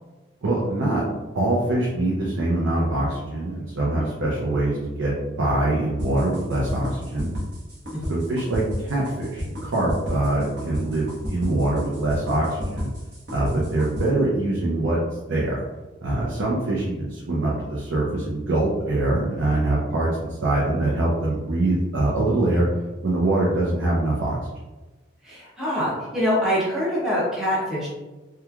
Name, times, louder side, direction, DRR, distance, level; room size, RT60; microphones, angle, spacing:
voice 1, 0.4-1.0 1.3-7.3 8.1-12.9 13.3-15.0 15.3-15.6 16.0-22.7 23.0-24.4, right 2 dB, 90° right, -4 dB, 0.5 m, -23 dB
sound 1, 6.0-14.1, left 1 dB, 60° right, 1.0 m, -31 dB
voice 2, 7.9-8.3 25.2-27.9, equal, 5° right, -8 dB, 0.6 m, -25 dB
2.9 x 2.2 x 2.3 m, 1.2 s
head